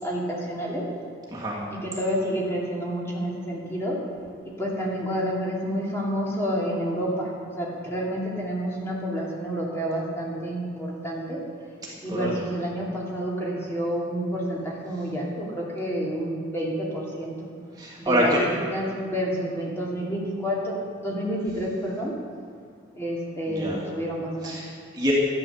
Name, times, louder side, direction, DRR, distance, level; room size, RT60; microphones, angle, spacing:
voice 1, 0.0-0.9 1.8-4.0 4.6-11.4 12.0-17.5 18.0-18.5 18.7-22.1 22.9-24.6, equal, 15° left, -4 dB, 2.5 m, -29 dB
voice 2, 1.3-1.6 12.1-12.4 17.8-18.4 23.5-23.8 24.4-25.1, equal, 20° right, -4 dB, 2.1 m, -26 dB
13.0 x 10.0 x 7.1 m, 2.1 s
head